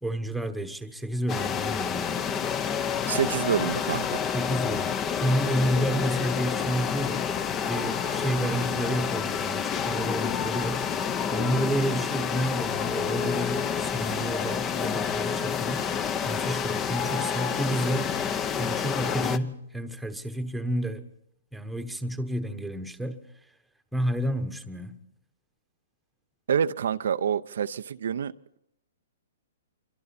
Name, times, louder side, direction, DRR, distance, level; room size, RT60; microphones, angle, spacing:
voice 1, 0.0-2.3 4.3-7.3 7.6-10.8 11.3-15.9 16.3-18.1 18.6-21.1 21.5-23.2 23.9-25.0, right 1 dB, ahead, 1.3 m, -30 dB
sound 1, 1.3-19.4, left 7 dB, 20° left, 0.9 m, -29 dB
voice 2, 3.1-4.2 26.5-28.6, right 8 dB, 75° right, 0.7 m, -27 dB
26.5 x 24.5 x 4.3 m
hypercardioid pair, 145°, 0 cm